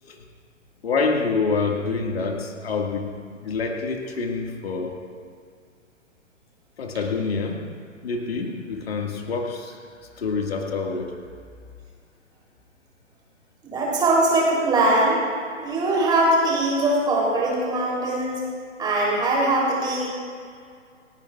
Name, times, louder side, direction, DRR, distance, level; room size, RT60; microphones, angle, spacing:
voice 1, 0.8-5.0 6.8-9.8 10.2-11.2, left 4 dB, 50° left, 2 dB, 1.9 m, -27 dB
voice 2, 13.6-15.2 15.6-18.4 18.8-20.1, right 2 dB, 10° right, -5 dB, 3.4 m, -21 dB
28.0 x 10.5 x 2.4 m, 2.1 s
figure-of-eight pair, 125°, 38 cm